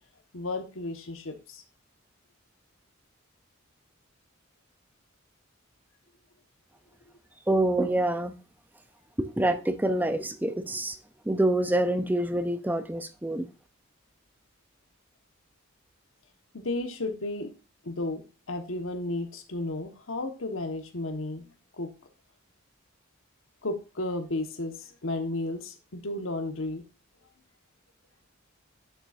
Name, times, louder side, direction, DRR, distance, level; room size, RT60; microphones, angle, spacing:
voice 1, 0.3-1.6 16.5-17.5 17.8-21.4 21.8-21.9 23.6-26.8, left 2 dB, 70° left, 1.2 m, -33 dB
voice 2, 7.5-8.3 9.2-11.0 11.3-13.5, right 1 dB, 10° right, 0.5 m, -26 dB
9.0 x 6.9 x 2.4 m
head